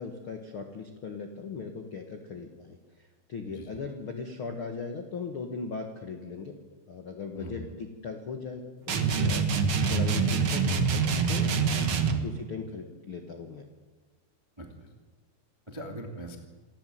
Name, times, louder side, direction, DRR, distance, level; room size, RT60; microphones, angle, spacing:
voice 1, 0.0-2.8 3.3-6.5 6.9-9.5 9.9-11.0 11.3-11.5 11.9-13.7, left 5 dB, 65° left, 5 dB, 1.3 m, -38 dB
voice 2, 3.5-3.8 7.3-7.6 12.1-12.2 14.6-14.9 15.7-16.4, right 1 dB, 15° right, 3 dB, 0.9 m, -41 dB
sound 1, 8.9-12.3, right 5 dB, 70° right, 1.2 m, -25 dB
27.5 x 13.0 x 9.3 m, 1.3 s
omnidirectional pair, 5.1 m